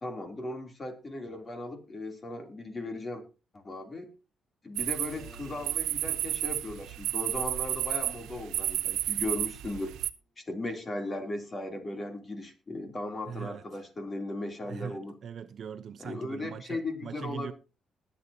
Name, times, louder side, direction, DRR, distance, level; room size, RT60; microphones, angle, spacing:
voice 1, 0.0-3.2 3.5-4.1 4.6-9.9 10.4-15.2 16.0-17.5, left 2 dB, 30° left, 3.2 m, -37 dB
sound 1, 4.8-10.1, right 13 dB, 90° right, 0.7 m, -32 dB
Keyboard (musical), 5.1-10.7, equal, 60° left, 5.2 m, -61 dB
voice 2, 13.3-13.6 14.6-17.5, right 7 dB, 60° right, 0.9 m, -41 dB
20.5 x 8.2 x 2.9 m
cardioid pair, 90°, 0 cm